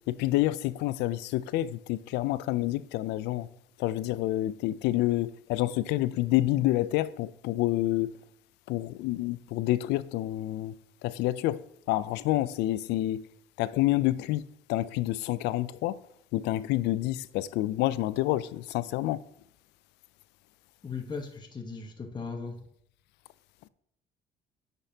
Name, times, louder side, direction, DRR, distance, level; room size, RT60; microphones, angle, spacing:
voice 1, 0.1-3.5 3.8-8.1 8.7-10.8 11.0-13.2 13.6-14.4 14.7-16.0 16.3-19.2, left 16 dB, 90° left, 0.4 m, -28 dB
voice 2, 20.8-22.6, left 4 dB, 25° left, 1.1 m, -37 dB
9.7 x 5.3 x 2.8 m
cardioid pair, 110°, 17 cm